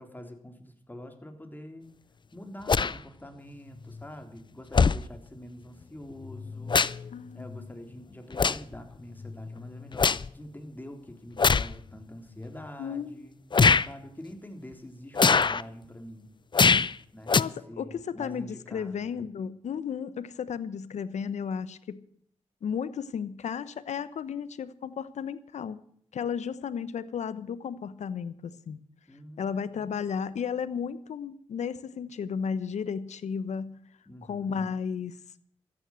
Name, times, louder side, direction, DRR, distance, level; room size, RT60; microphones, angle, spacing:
voice 1, 0.0-1.9 2.3-6.8 7.3-13.4 13.8-16.3 17.1-17.4 17.7-19.2 29.1-30.1 34.1-34.7, left 1 dB, 15° left, 5 dB, 3.6 m, -45 dB
sound 1, 2.7-2.9 4.0-4.1 4.7-5.0 6.2-7.1 7.5-7.7 8.3-8.7 9.2-10.3 11.4-11.7 12.4-12.5 13.5-13.9 15.1-15.6 16.5-16.9 17.3-17.4, left 5 dB, 40° left, 0.6 m, -23 dB
voice 2, 7.1-7.7 12.8-13.2 17.3-22.0 22.6-25.8 26.1-28.8 29.4-33.8 34.2-35.1, left 7 dB, 80° left, 16 dB, 1.0 m, -34 dB
14.0 x 9.8 x 7.8 m, 0.65 s
cardioid pair, 50°, 12 cm